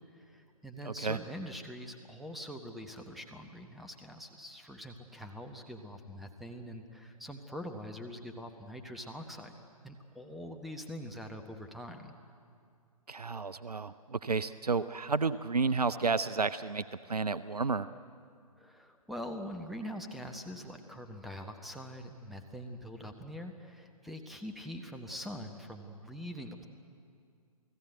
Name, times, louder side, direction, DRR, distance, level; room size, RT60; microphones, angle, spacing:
voice 1, 0.1-9.5 9.8-12.1 18.6-26.7, equal, ahead, 6 dB, 1.1 m, -44 dB
voice 2, 0.8-1.2 13.1-17.9, right 4 dB, 80° right, 15 dB, 0.7 m, -31 dB
29.0 x 18.5 x 8.1 m, 2.4 s
figure-of-eight pair, 130°, 20 cm